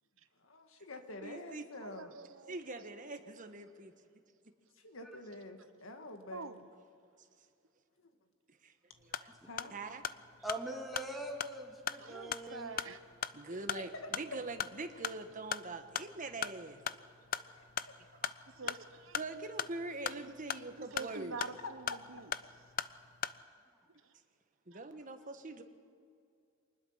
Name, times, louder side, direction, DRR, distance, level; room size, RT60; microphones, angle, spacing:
voice 1, 0.4-2.2 4.7-6.6 8.0-8.1 9.4-9.7 13.4-14.1 17.3-17.9 21.1-21.2 21.6-21.7, left 2 dB, 80° left, 6 dB, 1.8 m, -48 dB
voice 2, 1.2-1.6 2.5-3.9 8.6-8.7 9.2-9.3 9.7-10.0 13.3-16.8 18.2-18.3 19.1-21.4 24.7-25.6, right 2 dB, 40° right, 7 dB, 1.4 m, -43 dB
voice 3, 1.8-2.9 6.3-6.6 12.0-13.0 18.5-19.2 20.8-22.3 24.7-24.8, right 4 dB, 75° right, 10 dB, 1.1 m, -46 dB
sound 1, 8.9-23.4, left 9 dB, 45° left, 0.5 m, -41 dB
voice 4, 10.4-12.7, right 1 dB, ahead, -1 dB, 1.8 m, -42 dB
24.5 x 20.0 x 5.8 m, 2.3 s
head